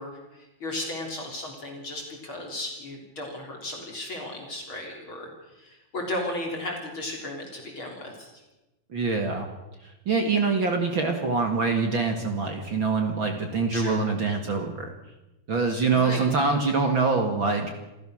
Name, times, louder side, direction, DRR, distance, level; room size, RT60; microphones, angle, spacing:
voice 1, 0.0-8.4 10.3-10.4 13.7-14.0 15.9-16.3, left 1 dB, 30° left, 0 dB, 4.0 m, -35 dB
voice 2, 8.9-9.5 10.1-14.9 15.5-17.7, right 4 dB, 40° right, 4 dB, 1.9 m, -24 dB
27.5 x 15.0 x 6.4 m, 1.0 s
omnidirectional pair, 4.6 m